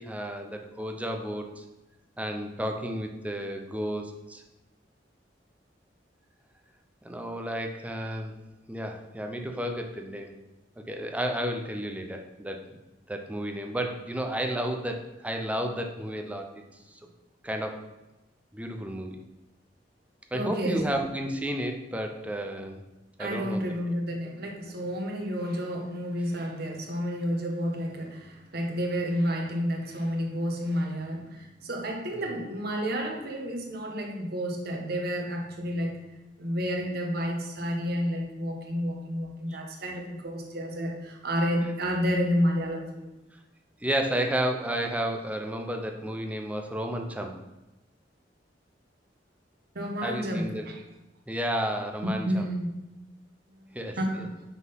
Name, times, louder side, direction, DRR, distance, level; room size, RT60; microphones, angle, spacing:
voice 1, 0.0-1.6 2.2-4.4 7.0-8.4 8.7-10.4 10.8-12.6 13.1-16.6 16.9-17.0 17.4-17.8 18.5-19.2 20.3-22.8 23.2-23.7 32.1-32.3 39.5-39.6 43.8-47.3 50.0-50.7 51.3-52.5 53.7-54.3, right 1 dB, 10° right, 4 dB, 0.6 m, -32 dB
voice 2, 20.3-20.9 23.2-36.0 36.4-43.2 49.7-50.8 52.0-52.8 54.0-54.4, equal, 60° right, 1 dB, 1.2 m, -30 dB
5.9 x 3.9 x 5.5 m, 1.0 s
head